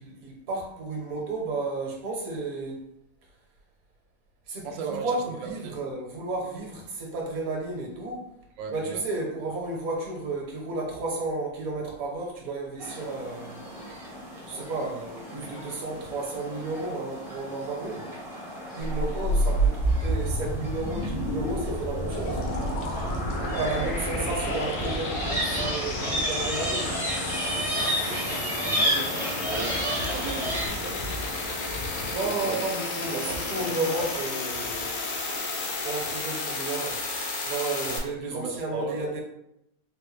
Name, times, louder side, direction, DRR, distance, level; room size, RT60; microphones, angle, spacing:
voice 1, 0.0-2.8 4.5-8.3 8.7-13.6 14.5-18.1 18.7-22.4 23.3-27.0 32.1-35.1 35.4-35.6 35.8-37.0 37.5-39.2, right 2 dB, 60° right, -1 dB, 1.1 m, -33 dB
voice 2, 4.6-5.8 8.6-9.0 18.9-19.2 23.3-23.9 24.3-24.8 28.1-31.0 32.0-32.6 33.1-34.2 37.8-39.0, right 6 dB, 85° right, 3 dB, 0.6 m, -37 dB
sound 1, 12.8-30.7, equal, 5° right, 0.4 m, -33 dB
sound 2, 18.8-38.0, left 1 dB, 90° left, 1.4 m, -30 dB
sound 3, 22.1-37.2, left 2 dB, 70° left, 0.8 m, -45 dB
3.8 x 2.1 x 3.1 m, 0.81 s
omnidirectional pair, 1.9 m